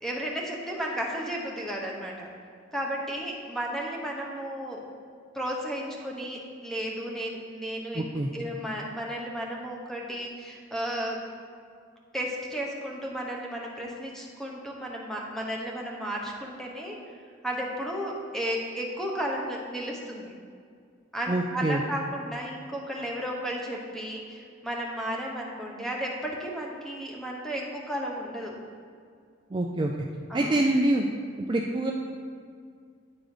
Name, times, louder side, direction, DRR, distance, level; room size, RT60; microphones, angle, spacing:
voice 1, 0.0-2.3 2.7-4.8 5.3-8.1 8.3-11.2 12.1-17.2 17.4-20.3 21.1-28.6 30.3-30.7, equal, ahead, -2 dB, 0.9 m, -33 dB
voice 2, 7.9-8.3 21.3-21.8 29.5-29.9 30.3-31.1 31.4-31.9, right 1 dB, 25° right, 0 dB, 0.3 m, -25 dB
9.6 x 3.9 x 4.9 m, 2.1 s
head